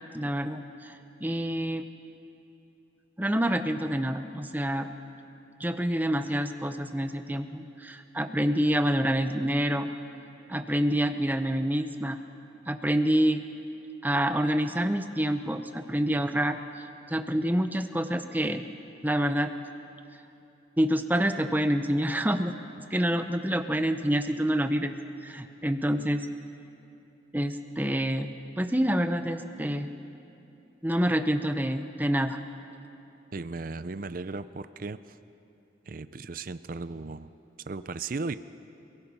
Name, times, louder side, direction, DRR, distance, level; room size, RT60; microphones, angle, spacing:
voice 1, 0.1-1.8 3.2-4.9 5.6-9.9 10.5-12.2 12.7-13.4 14.0-16.6 17.1-18.7 19.0-19.5 20.8-22.5 22.9-24.9 25.2-26.2 27.3-29.9 30.8-32.4, equal, 10° right, 8 dB, 0.8 m, -27 dB
voice 2, 33.3-35.2 35.8-37.3 37.7-38.4, right 3 dB, 45° right, 13 dB, 0.5 m, -36 dB
29.5 x 17.5 x 5.5 m, 2.8 s
head